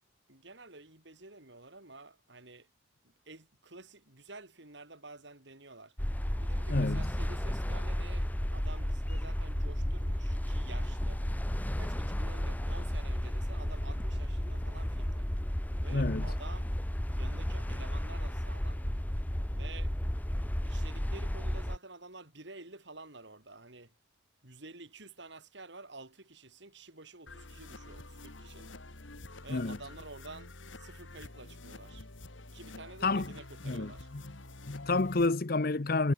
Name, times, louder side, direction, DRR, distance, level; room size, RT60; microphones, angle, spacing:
voice 1, 0.3-2.7 3.0-6.0 6.4-11.2 11.8-15.3 15.8-16.7 17.0-18.8 19.5-20.0 20.6-23.9 24.4-28.7 29.4-32.1 32.5-34.1, right 3 dB, 65° right, 3.9 m, -50 dB
sound 1, 6.0-21.8, equal, 10° left, 0.7 m, -33 dB
voice 2, 6.7-7.0 15.9-16.2 29.5-29.8 33.0-33.3 33.7-34.2 34.7-36.1, left 3 dB, 50° left, 0.8 m, -29 dB
sound 2, 10.9-13.4 13.7-16.8, equal, 25° left, 5.1 m, -57 dB
sound 3, 27.3-35.3, left 2 dB, 75° left, 2.8 m, -48 dB
head